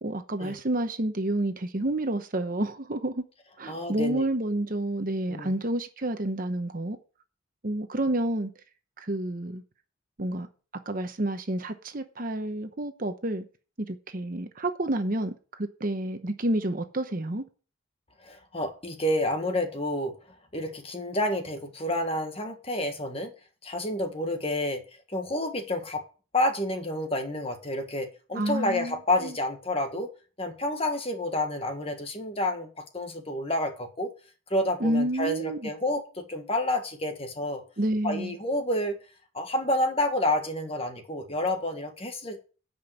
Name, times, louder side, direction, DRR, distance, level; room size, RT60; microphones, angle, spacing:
voice 1, 0.0-3.2 3.6-7.0 7.6-8.5 9.0-9.6 10.2-10.5 10.9-13.4 13.9-15.3 15.6-17.4 28.3-29.0 29.2-29.3 34.8-35.6 37.8-38.3, right 1 dB, 40° right, 1.0 m, -29 dB
voice 2, 3.7-4.2 5.3-5.5 18.2-20.2 20.5-23.3 23.6-24.8 25.1-26.0 26.3-30.1 30.4-32.7 32.9-34.1 34.5-37.6 38.0-39.0 39.3-42.4, left 1 dB, 30° left, 1.5 m, -29 dB
10.5 x 5.3 x 7.9 m
head